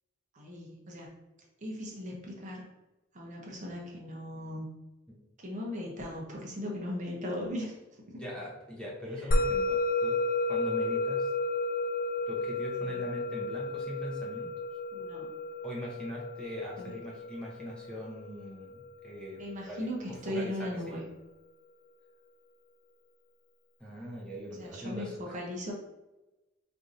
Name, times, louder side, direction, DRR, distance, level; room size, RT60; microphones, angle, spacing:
voice 1, 0.3-1.1 1.6-2.7 3.1-4.6 5.4-7.8 8.1-8.2 9.2-9.3 12.8-12.9 14.9-15.3 16.8-16.9 19.4-21.0 24.6-25.7, left 1 dB, 40° right, -2 dB, 0.8 m, -38 dB
voice 2, 8.1-10.2 10.5-11.3 12.3-14.5 15.6-21.0 23.8-25.4, equal, 5° left, -4 dB, 0.8 m, -41 dB
Musical instrument, 9.3-19.9, left 2 dB, 45° left, 0.3 m, -32 dB
4.5 x 2.6 x 2.6 m, 1.0 s
head